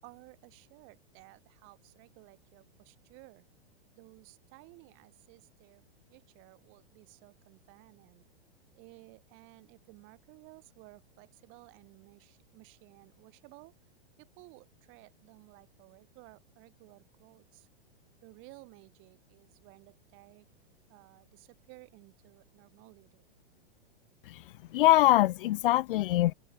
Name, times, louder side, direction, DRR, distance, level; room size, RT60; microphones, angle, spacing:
voice 1, 0.0-3.4 3.9-5.8 6.1-8.2 8.7-13.7 14.2-17.7 18.2-20.4 20.9-23.2, right 27 dB, 40° right, 4.9 m, -56 dB
voice 2, 24.7-26.3, left 16 dB, 60° left, 0.6 m, -23 dB
open air
hypercardioid pair, 130°, 30 cm